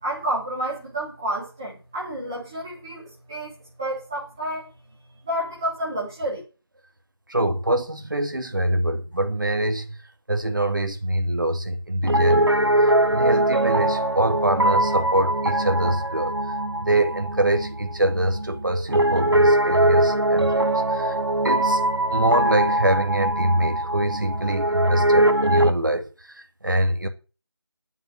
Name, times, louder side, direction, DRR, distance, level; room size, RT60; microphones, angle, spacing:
voice 1, 0.0-4.7 5.2-6.4, right 1 dB, 10° right, 2.9 m, -30 dB
voice 2, 7.3-10.0 10.3-12.7 13.1-16.4 16.8-21.2 21.4-21.8 22.1-27.1, right 1 dB, 50° right, 2.4 m, -24 dB
Piano, 12.0-25.7, right 1 dB, 70° right, 1.8 m, -22 dB
9.4 x 8.9 x 8.8 m
figure-of-eight pair, 175°, 14 cm